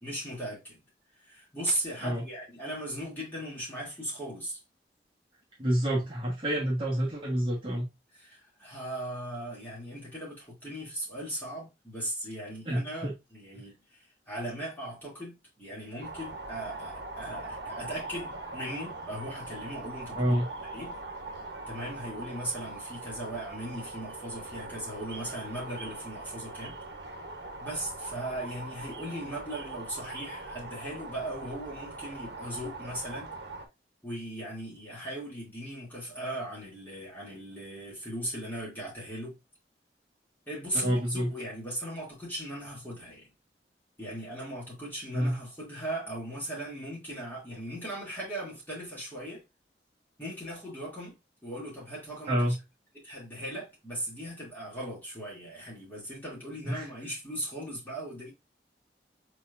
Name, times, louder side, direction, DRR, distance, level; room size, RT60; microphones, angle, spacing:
voice 1, 0.0-0.8 1.2-4.6 8.1-13.8 14.3-20.4 20.7-21.0 21.7-26.8 27.6-33.4 34.0-39.3 40.5-43.3 44.0-49.4 50.2-52.4 53.0-58.3, right 1 dB, 10° left, 2.5 m, -38 dB
voice 2, 5.6-7.9 12.6-13.1 20.2-20.5 40.7-41.3 45.1-45.4 52.3-52.6 56.6-56.8, equal, 30° right, 1.3 m, -28 dB
sound 1, 16.0-33.7, right 2 dB, 70° right, 1.0 m, -41 dB
4.5 x 4.0 x 2.5 m
head